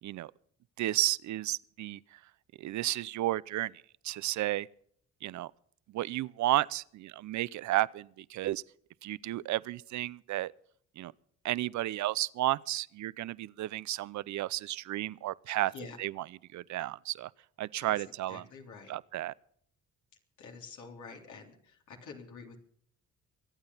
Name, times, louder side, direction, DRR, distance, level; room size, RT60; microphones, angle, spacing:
voice 1, 0.8-2.2 2.6-4.7 5.2-5.5 5.9-8.6 9.0-10.5 11.0-11.1 11.4-15.7 16.0-17.3 17.6-18.5 18.9-19.3, right 15 dB, 70° right, 0.6 m, -33 dB
voice 2, 18.3-18.9 20.4-22.6, left 5 dB, 75° left, 3.5 m, -47 dB
24.0 x 8.8 x 5.6 m
cardioid pair, 90°, 30 cm